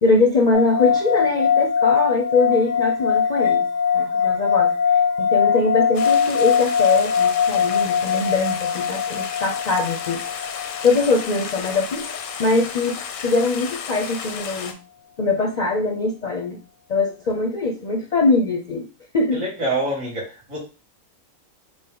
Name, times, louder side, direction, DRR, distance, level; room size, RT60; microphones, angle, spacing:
voice 1, 0.0-3.6 3.9-4.7 5.2-10.2 10.8-12.1 12.4-14.7 15.2-16.6 16.9-18.9 19.1-19.5, left 3 dB, 50° left, 2 dB, 0.5 m, -22 dB
sound 1, 0.5-11.9, left 7 dB, 50° right, 1.1 m, -21 dB
Stream, 5.9-14.7, left 6 dB, 90° left, 1.1 m, -33 dB
voice 2, 19.3-20.6, right 2 dB, 75° right, -4 dB, 2.7 m, -26 dB
5.2 x 2.1 x 3.7 m, 0.33 s
omnidirectional pair, 1.4 m